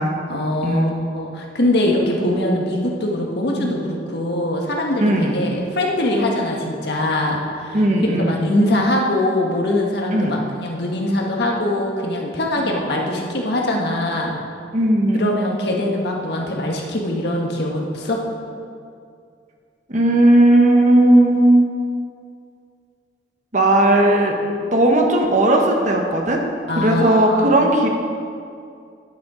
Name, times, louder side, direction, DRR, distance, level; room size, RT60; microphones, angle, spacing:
voice 1, 0.3-7.8 8.3-14.4 15.1-18.2 26.7-27.6, left 1 dB, 65° left, -1 dB, 1.6 m, -22 dB
voice 2, 5.0-5.3 7.7-8.5 10.1-10.4 14.7-15.3 19.9-21.6 23.5-24.3 24.7-26.4 26.8-27.9, right 1 dB, 45° right, 1 dB, 1.3 m, -16 dB
10.5 x 9.4 x 5.0 m, 2.4 s
head